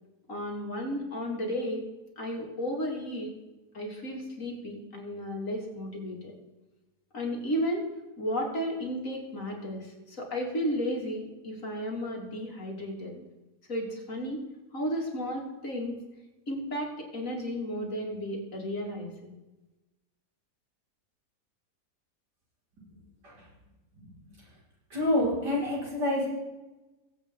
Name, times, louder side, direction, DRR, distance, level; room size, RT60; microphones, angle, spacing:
voice 1, 0.3-1.8 2.2-3.3 3.7-6.3 7.1-7.9 8.2-13.2 13.7-14.4 14.7-16.0 16.5-19.3, equal, 50° left, 0 dB, 2.7 m, -33 dB
voice 2, 23.9-24.4 24.9-26.3, left 1 dB, 85° right, -6 dB, 5.7 m, -28 dB
22.5 x 7.9 x 3.7 m, 1.1 s
omnidirectional pair, 1.8 m